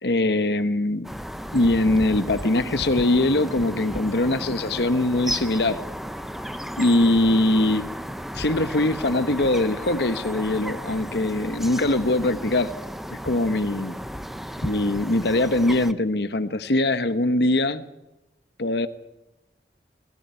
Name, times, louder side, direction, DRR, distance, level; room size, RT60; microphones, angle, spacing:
voice 1, 0.0-1.1 1.5-5.8 6.8-7.9 8.3-12.7 13.1-14.0 14.6-17.8 18.6-18.9, left 2 dB, 75° left, 12 dB, 1.2 m, -22 dB
sound 1, 1.0-15.9, equal, ahead, 0.8 m, -34 dB
21.5 x 16.5 x 9.8 m, 0.99 s
head